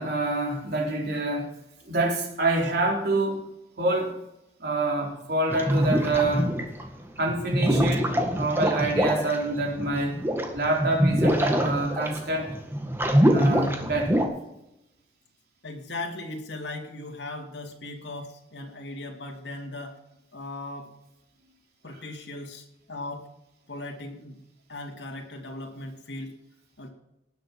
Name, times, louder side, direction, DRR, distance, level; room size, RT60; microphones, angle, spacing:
voice 1, 0.0-1.5 1.9-3.4 3.8-4.2 4.6-6.5 7.2-8.1 8.4-10.2 10.5-12.6 13.3-14.2, right 2 dB, 60° right, 0 dB, 3.9 m, -26 dB
sound 1, 5.5-6.9 7.3-14.2, equal, 15° right, 1.9 m, -24 dB
voice 2, 15.6-20.0 20.3-20.9 21.8-23.3 23.7-24.4 24.7-26.4 26.8-26.9, left 2 dB, 75° left, 2 dB, 2.5 m, -38 dB
19.0 x 7.8 x 6.2 m, 0.86 s
head